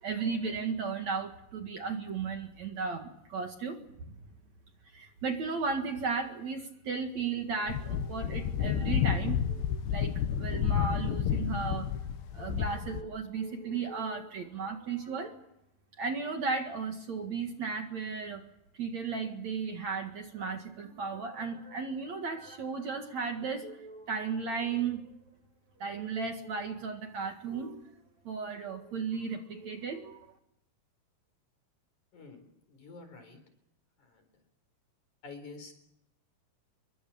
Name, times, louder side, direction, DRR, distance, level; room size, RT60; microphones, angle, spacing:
voice 1, 0.0-3.8 4.8-11.9 12.3-15.4 16.0-18.4 18.8-25.2 25.8-27.8 28.2-30.2, right 5 dB, 50° right, 4 dB, 2.7 m, -35 dB
sound 1, 7.7-13.0, left 9 dB, 85° left, 3.2 m, -30 dB
voice 2, 32.1-32.4 32.7-33.4 34.1-34.3 35.2-35.7, left 4 dB, 50° left, 8 dB, 5.5 m, -48 dB
27.5 x 23.5 x 7.1 m, 0.79 s
omnidirectional pair, 4.6 m